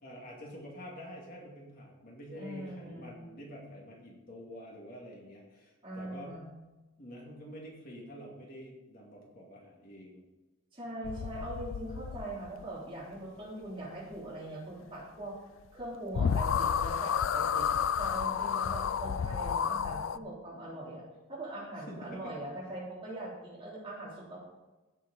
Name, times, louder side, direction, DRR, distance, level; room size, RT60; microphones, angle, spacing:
voice 1, 0.0-6.4 7.0-10.2 21.9-22.3, equal, 40° left, -2 dB, 2.3 m, -47 dB
voice 2, 2.3-3.2 5.8-6.5 10.7-15.4 15.7-17.7 18.0-21.0 21.3-24.5, right 1 dB, 25° right, -6 dB, 3.5 m, -41 dB
sound 1, 11.0-12.6 15.8-15.9 16.1-20.2, left 7 dB, 65° left, 0.4 m, -31 dB
16.0 x 6.4 x 4.1 m, 1.1 s
head